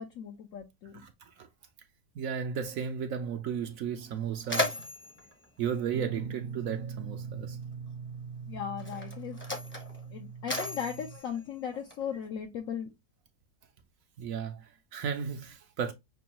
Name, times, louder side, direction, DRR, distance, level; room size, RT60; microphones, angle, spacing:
voice 1, 0.0-1.0 8.4-9.4 10.1-12.9, left 8 dB, 65° left, 0.9 m, -37 dB
voice 2, 0.9-1.5 2.1-4.8 5.6-7.6 14.2-15.9, right 7 dB, 70° right, 0.9 m, -34 dB
Mechanisms, 3.5-3.6 4.0-6.7 7.7-7.9 8.7-12.3, left 1 dB, 10° left, 0.6 m, -37 dB
Guitar, 5.9-11.2, right 6 dB, 85° right, 1.2 m, -41 dB
6.0 x 2.3 x 2.9 m
omnidirectional pair, 1.6 m